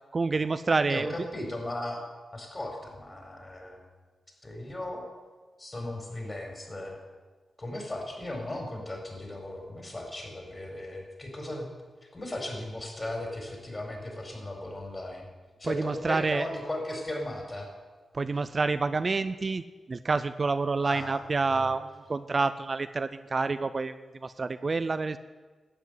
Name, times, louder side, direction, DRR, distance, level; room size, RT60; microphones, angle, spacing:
voice 1, 0.1-1.1 15.6-16.5 18.1-24.0 24.2-25.2, right 3 dB, 45° right, 12 dB, 0.5 m, -28 dB
voice 2, 0.8-2.0 2.3-3.8 4.4-5.1 5.6-7.0 7.6-11.7 12.1-15.3 15.6-17.7 20.8-21.8, left 1 dB, 30° left, 2 dB, 4.5 m, -37 dB
12.5 x 8.1 x 9.3 m, 1.4 s
cardioid pair, 70°, 0 cm